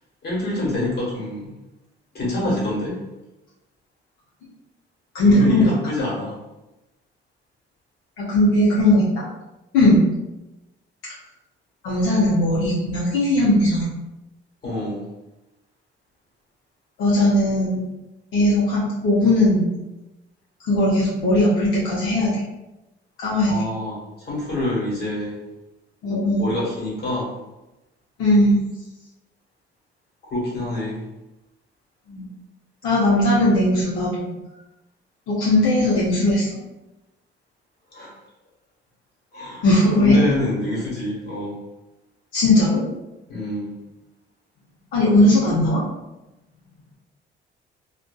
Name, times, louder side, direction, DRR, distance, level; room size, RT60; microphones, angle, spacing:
voice 1, 0.2-1.5 2.1-3.0 5.2-6.4 14.6-15.0 23.5-25.4 26.4-27.3 30.2-31.0 37.9-38.1 39.3-39.6 40.0-41.6 43.3-43.7, left 2 dB, 55° left, -6 dB, 1.4 m, -26 dB
voice 2, 5.1-5.7 8.2-9.2 9.7-10.0 11.8-13.9 17.0-17.8 18.3-19.7 20.6-22.4 23.2-23.6 26.0-26.4 28.2-28.6 32.1-32.3 32.8-34.3 35.3-36.5 39.6-40.2 42.3-42.8 44.9-45.9, left 1 dB, 80° left, -8 dB, 0.8 m, -18 dB
2.6 x 2.4 x 2.3 m, 0.98 s
cardioid pair, 90°, 20 cm